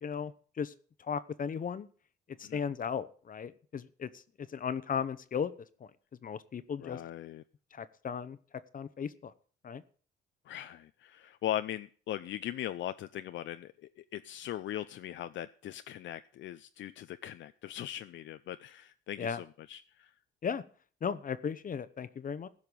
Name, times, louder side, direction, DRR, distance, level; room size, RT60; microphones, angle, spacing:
voice 1, 0.0-0.7 1.0-1.9 2.4-5.5 5.8-5.9 6.2-7.0 7.7-8.4 8.7-9.3 9.6-9.8 19.2-19.4 20.4-20.6 21.0-22.5, left 7 dB, 45° left, 15 dB, 0.9 m, -36 dB
voice 2, 6.8-7.4 10.5-20.1, left 12 dB, 70° left, 11 dB, 0.5 m, -40 dB
15.5 x 5.7 x 6.9 m, 0.43 s
cardioid pair, 90°, 20 cm